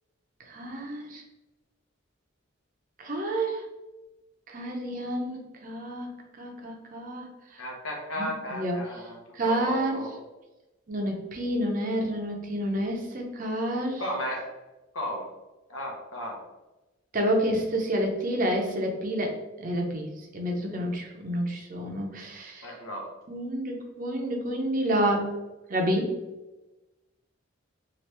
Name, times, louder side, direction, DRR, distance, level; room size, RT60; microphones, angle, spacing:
voice 1, 0.5-1.2 3.0-3.6 4.5-7.3 7.5-7.6 8.2-8.8 9.3-10.0 10.9-14.0 17.1-20.1 20.3-22.7 23.3-25.3 25.7-26.2, right 1 dB, 40° right, 1 dB, 0.6 m, -29 dB
voice 2, 7.6-9.2 9.5-10.2 14.0-14.5 14.9-15.3 15.7-16.4 22.6-23.1, equal, 90° left, -1 dB, 0.9 m, -34 dB
2.9 x 2.5 x 3.2 m, 1.1 s
head